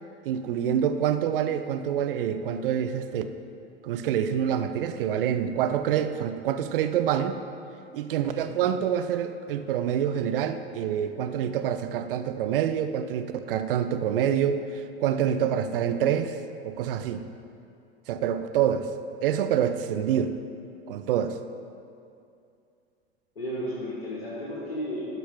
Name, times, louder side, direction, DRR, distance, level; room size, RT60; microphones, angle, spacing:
voice 1, 0.3-3.2 3.8-7.4 7.9-16.4 16.6-17.3 18.1-18.9 19.2-20.3 20.9-21.4, right 9 dB, 60° right, 9 dB, 0.6 m, -26 dB
voice 2, 8.3-8.7 23.4-25.1, equal, 70° left, -6 dB, 1.8 m, -34 dB
10.5 x 6.0 x 3.6 m, 2.5 s
figure-of-eight pair, 75°, 31 cm